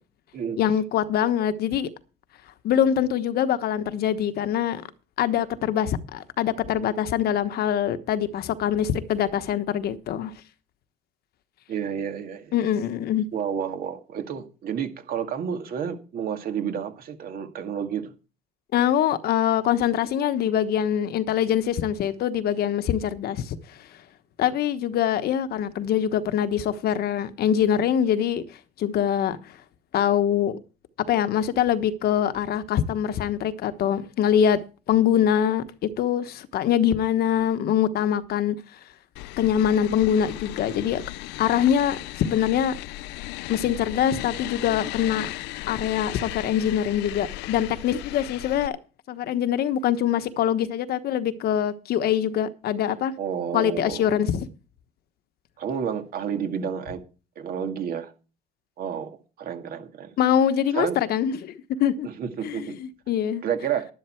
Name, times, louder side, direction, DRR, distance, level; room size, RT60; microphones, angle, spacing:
voice 1, 0.6-1.9 2.6-4.8 5.2-10.3 12.5-13.3 18.7-23.6 24.4-28.4 28.8-29.5 29.9-30.6 31.1-34.6 34.9-38.6 39.4-41.0 41.4-42.8 43.5-45.3 45.7-48.8 49.1-53.1 53.5-54.5 60.2-62.1 62.4-63.4, left 9 dB, 65° left, 1.2 m, -24 dB
voice 2, 11.7-12.5 13.3-18.1 53.2-54.1 55.6-57.0 57.4-58.1 58.8-60.1 60.7-61.0 62.0-62.8 63.4-63.9, right 8 dB, 60° right, 2.1 m, -30 dB
sound 1, 39.2-48.7, left 18 dB, 90° left, 0.5 m, -36 dB
11.5 x 11.0 x 4.5 m
cardioid pair, 110°, 17 cm